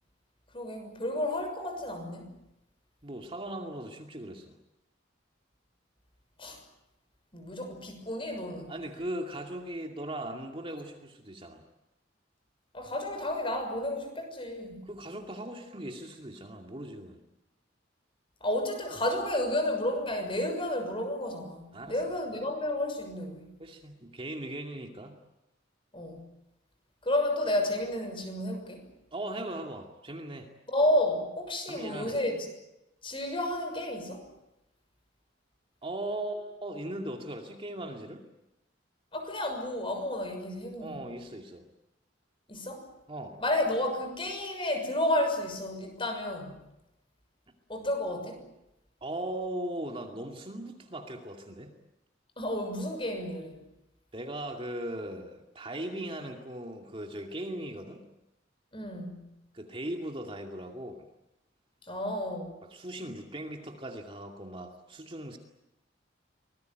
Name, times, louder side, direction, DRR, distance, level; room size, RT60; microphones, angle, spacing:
voice 1, 0.5-2.3 6.4-6.6 7.3-8.7 12.7-14.9 18.4-23.5 25.9-26.2 27.0-28.9 30.7-32.5 33.0-34.3 39.1-41.0 42.5-42.9 43.4-46.5 47.7-48.4 52.4-53.6 58.7-59.3 61.9-62.6, left 1 dB, 30° left, 5 dB, 6.4 m, -31 dB
voice 2, 3.0-4.6 8.7-11.6 14.8-17.2 21.7-22.0 23.6-25.2 29.1-30.5 31.7-32.2 35.8-38.3 40.8-41.7 43.1-43.4 49.0-51.7 54.1-58.0 59.5-61.1 62.6-65.4, right 1 dB, 30° right, 3 dB, 2.5 m, -38 dB
25.0 x 20.0 x 9.3 m, 0.89 s
head